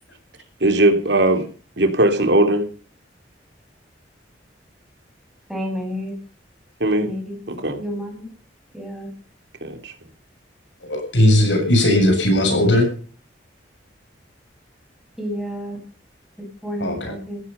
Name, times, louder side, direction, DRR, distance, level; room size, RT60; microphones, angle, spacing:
voice 1, 0.6-1.5 1.8-2.6 5.9-6.0 6.8-7.1 7.5-7.8 9.6-9.9, right 1 dB, 70° right, 3.1 m, -19 dB
voice 2, 5.5-6.1 7.0-7.4 7.8-8.3 8.7-9.1 15.2-15.8 16.4-17.4, equal, ahead, 7.1 m, -30 dB
voice 3, 10.9-12.9 16.8-17.1, left 1 dB, 90° left, 7.3 m, -17 dB
15.5 x 14.5 x 5.6 m
head